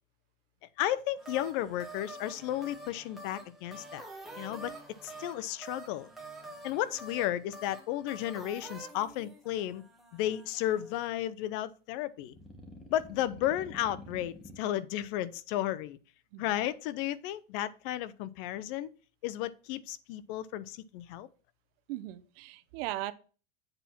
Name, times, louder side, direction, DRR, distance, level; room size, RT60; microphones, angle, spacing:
voice 1, 0.8-4.1 4.4-4.7 5.0-6.1 6.6-9.8 10.1-12.3 12.9-16.0 16.4-18.9 19.2-21.3, left 13 dB, 60° left, 0.8 m, -33 dB
sound 1, 1.2-11.1 12.2-14.6, right 1 dB, ahead, 1.8 m, -48 dB
voice 2, 21.9-23.1, right 16 dB, 65° right, 0.9 m, -38 dB
8.0 x 4.3 x 5.9 m
supercardioid pair, 125°, 31 cm